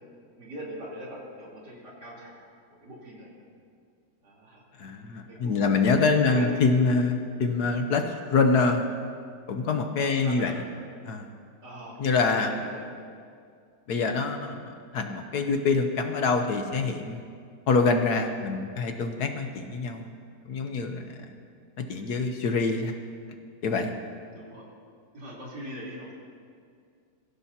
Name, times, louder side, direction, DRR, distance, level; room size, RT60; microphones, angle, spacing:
voice 1, 0.4-2.4 2.8-3.3 4.2-4.6 5.2-5.7 6.2-6.5 10.0-10.6 11.6-12.9 24.3-24.7 25.1-26.1, equal, 65° right, -6 dB, 4.2 m, -41 dB
voice 2, 4.8-8.9 9.5-10.5 11.0-11.3 12.0-12.6 13.9-17.2 17.7-20.1 20.5-21.1 21.8-22.9 23.6-23.9, left 4 dB, 65° left, 5 dB, 1.4 m, -25 dB
23.5 x 15.5 x 2.9 m, 2.2 s
omnidirectional pair, 1.9 m